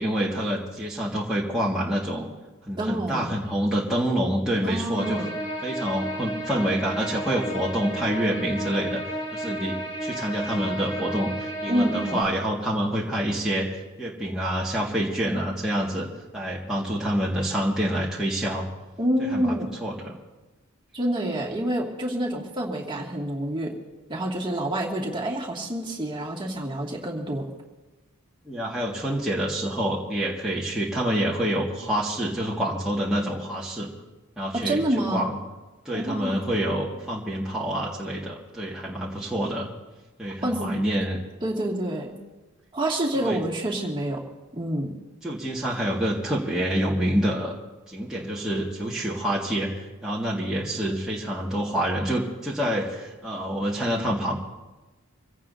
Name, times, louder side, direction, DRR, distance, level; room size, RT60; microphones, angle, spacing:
voice 1, 0.0-2.3 2.7-5.3 5.6-9.0 9.3-18.7 19.3-20.1 28.5-33.9 34.4-34.8 35.1-35.4 35.9-39.7 40.2-41.2 43.1-43.4 45.2-47.6 47.9-49.7 50.0-54.4, equal, 5° right, -7 dB, 1.9 m, -27 dB
voice 2, 2.8-3.3 4.6-5.3 11.7-12.2 19.0-19.7 20.9-23.7 24.1-27.5 34.5-35.2 35.9-36.4 40.4-40.8 41.4-42.2 42.7-44.2 44.5-44.9, right 1 dB, 20° right, -2 dB, 2.3 m, -27 dB
sound 1, 5.0-12.2, right 1 dB, 20° left, 4.6 m, -33 dB
26.5 x 16.5 x 2.8 m, 1.1 s
head